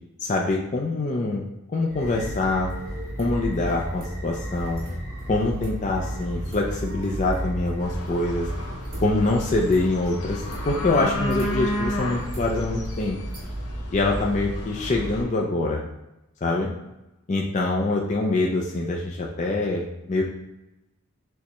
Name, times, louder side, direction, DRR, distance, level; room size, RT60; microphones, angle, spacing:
voice 1, 0.2-1.5 1.7-2.7 3.2-4.8 5.3-8.5 9.0-13.2 13.9-15.8 16.4-16.7 17.3-20.2, left 2 dB, 30° left, -1 dB, 0.4 m, -24 dB
sound 1, 1.9-15.2, right 1 dB, 40° right, 1.2 m, -33 dB
sound 2, 7.8-15.2, equal, 80° left, 0.8 m, -33 dB
6.5 x 2.2 x 2.9 m, 0.94 s
head